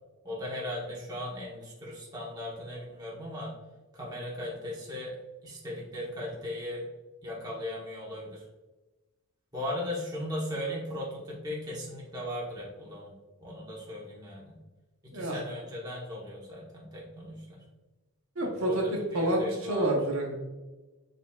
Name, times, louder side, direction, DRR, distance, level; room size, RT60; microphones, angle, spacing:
voice 1, 0.2-3.5 3.9-5.2 5.4-6.8 7.2-8.4 9.5-13.1 13.4-14.6 15.0-17.6 18.4-19.9, left 1 dB, 15° right, -5 dB, 0.8 m, -37 dB
voice 2, 18.4-18.8 19.1-20.3, right 1 dB, 65° right, 0 dB, 0.8 m, -28 dB
4.9 x 3.5 x 2.2 m, 1.2 s
head